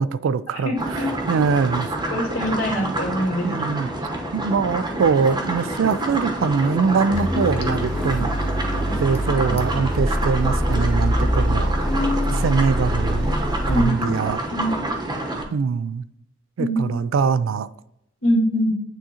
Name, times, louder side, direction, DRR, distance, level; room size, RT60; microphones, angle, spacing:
voice 1, 0.0-1.9 3.4-3.9 4.3-8.3 9.0-11.8 12.4-13.4 13.7-14.5 15.5-16.1 16.6-17.7, right 5 dB, 65° right, 0.3 m, -23 dB
voice 2, 0.6-1.1 2.1-3.5 11.8-12.4 13.7-14.1 14.5-14.7 16.6-17.0 18.2-18.7, equal, 75° left, 2.1 m, -23 dB
sound 1, 0.8-15.4, right 1 dB, 20° right, 0.9 m, -28 dB
Liquid, 4.9-11.0 11.3-11.4, equal, 30° left, 0.7 m, -35 dB
sound 2, 7.1-13.8, equal, 5° left, 0.9 m, -24 dB
9.0 x 3.7 x 2.8 m
head